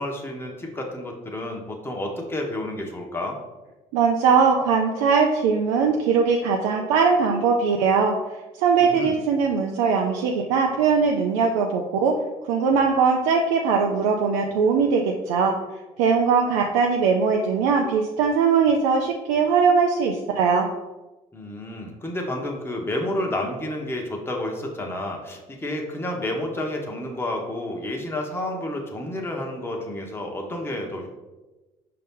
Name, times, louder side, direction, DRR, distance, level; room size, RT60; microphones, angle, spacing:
voice 1, 0.0-3.4 8.8-9.2 21.3-31.1, left 1 dB, 15° left, 0 dB, 1.0 m, -30 dB
voice 2, 3.9-8.1 8.6-12.1 12.5-15.5 16.0-20.7, right 5 dB, 85° right, 1 dB, 0.4 m, -20 dB
5.2 x 2.8 x 3.6 m, 1.1 s
supercardioid pair, 70°, 16 cm